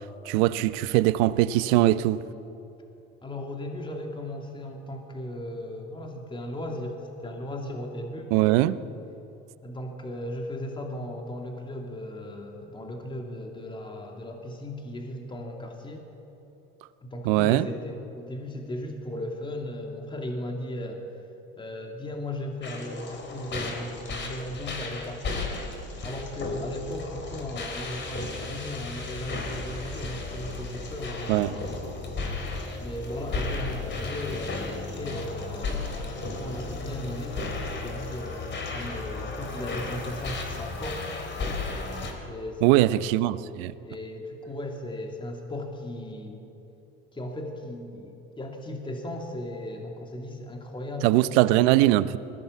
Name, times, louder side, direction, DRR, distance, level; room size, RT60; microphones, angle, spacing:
voice 1, 0.2-2.2 8.3-8.8 17.2-17.7 31.3-31.6 42.6-43.7 51.0-52.2, right 15 dB, 70° right, 0.8 m, -21 dB
voice 2, 3.2-8.3 9.6-16.0 17.0-21.0 21.6-25.5 26.0-31.5 32.8-37.4 37.7-41.1 42.2-43.2 43.8-46.5 47.1-51.2, left 1 dB, 15° left, 2.6 m, -36 dB
sound 1, 22.6-42.1, left 3 dB, 40° left, 4.0 m, -34 dB
20.5 x 16.5 x 8.4 m
hypercardioid pair, 85°, 29 cm